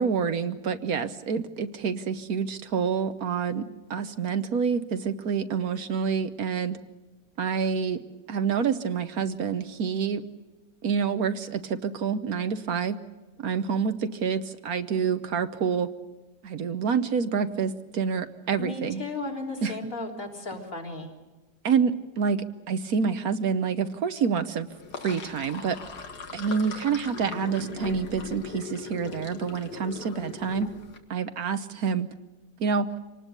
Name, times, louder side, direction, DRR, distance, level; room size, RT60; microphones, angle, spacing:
voice 1, 0.0-3.6 3.9-6.8 7.4-8.0 8.3-10.2 10.8-13.0 13.4-15.9 16.4-19.0 19.6-19.7 21.6-24.7 25.0-25.8 26.3-30.7 31.1-32.1 32.6-32.9, right 6 dB, 65° right, 10 dB, 1.4 m, -27 dB
voice 2, 18.6-21.1, left 2 dB, 55° left, 0 dB, 3.9 m, -35 dB
Sink (filling or washing), 24.7-31.0, left 5 dB, 80° left, 2.4 m, -39 dB
26.0 x 19.0 x 6.7 m, 1.2 s
omnidirectional pair, 1.7 m